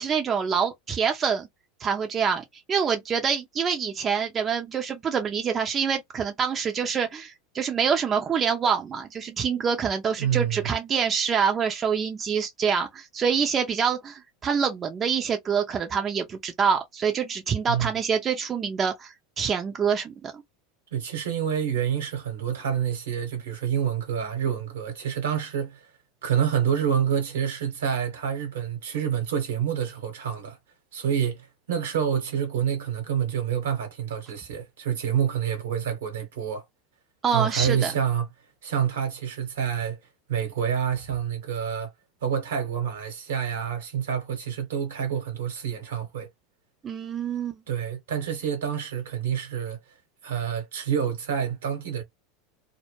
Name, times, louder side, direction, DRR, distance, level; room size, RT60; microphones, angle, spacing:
voice 1, 0.0-1.5 1.8-20.4 37.2-37.9 46.8-47.6, right 6 dB, 30° right, 0.6 m, -26 dB
voice 2, 10.2-10.7 17.7-17.9 20.9-25.9 26.2-30.6 30.9-36.6 37.3-38.3 38.6-40.0 40.3-41.9 42.2-46.3 47.7-49.8 50.2-52.0, right 8 dB, 75° right, 1.0 m, -27 dB
2.2 x 2.1 x 3.1 m
hypercardioid pair, 85°, 0 cm